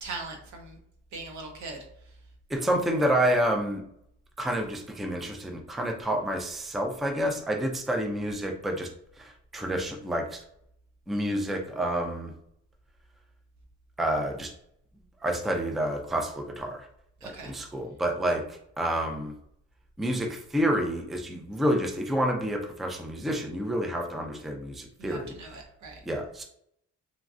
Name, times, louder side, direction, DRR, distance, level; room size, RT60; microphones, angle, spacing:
voice 1, 0.0-0.8 1.1-1.8 17.2-17.5 25.0-26.0, right 3 dB, 70° right, 2 dB, 0.8 m, -40 dB
voice 2, 2.5-3.8 4.4-8.9 9.2-10.4 11.1-12.3 14.0-14.5 15.2-16.9 17.2-19.3 20.0-25.3 26.1-26.4, right 1 dB, ahead, 3 dB, 0.4 m, -29 dB
3.1 x 2.3 x 2.4 m, 0.72 s
cardioid pair, 90°, 30 cm